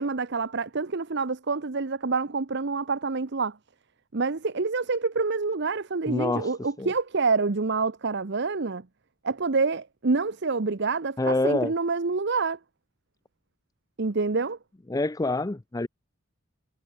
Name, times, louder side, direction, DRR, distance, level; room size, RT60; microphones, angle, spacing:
voice 1, 0.0-3.6 4.1-8.9 9.2-12.6 14.0-14.6, right 4 dB, 55° right, 0.8 m, -27 dB
voice 2, 6.1-6.5 6.8-6.9 11.2-11.7 14.9-15.9, left 2 dB, 15° left, 0.5 m, -26 dB
head